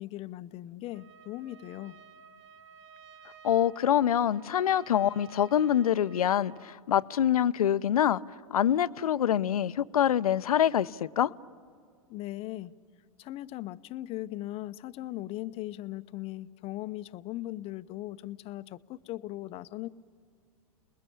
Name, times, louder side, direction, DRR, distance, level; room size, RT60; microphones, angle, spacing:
voice 1, 0.0-2.0 12.1-12.7 13.2-19.9, left 16 dB, 35° left, 0.7 m, -39 dB
Trumpet, 0.9-6.8, right 6 dB, 70° right, 3.1 m, -54 dB
voice 2, 3.4-8.2 8.5-11.3, left 10 dB, 85° left, 0.7 m, -25 dB
29.0 x 21.5 x 8.5 m
hypercardioid pair, 120°, 18 cm